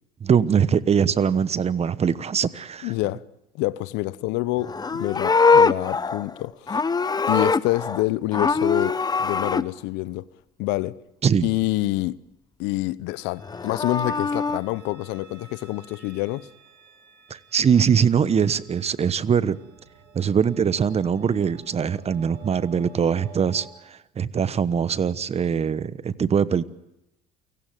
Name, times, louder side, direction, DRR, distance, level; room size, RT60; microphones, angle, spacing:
voice 1, 0.2-2.9 11.2-11.5 17.3-19.6 20.1-26.6, right 7 dB, 35° right, 1.1 m, -22 dB
voice 2, 2.8-3.3 3.5-6.8 7.3-10.3 10.6-11.0 11.4-12.2 12.6-16.5, left 18 dB, 75° left, 0.9 m, -27 dB
Livestock farm animals working animals, 4.6-8.0 8.3-9.6 13.4-14.6, left 4 dB, 20° left, 0.9 m, -22 dB
sound 1, 13.1-23.7, right 5 dB, 65° right, 6.7 m, -50 dB
29.0 x 18.0 x 9.2 m
supercardioid pair, 75°, 18 cm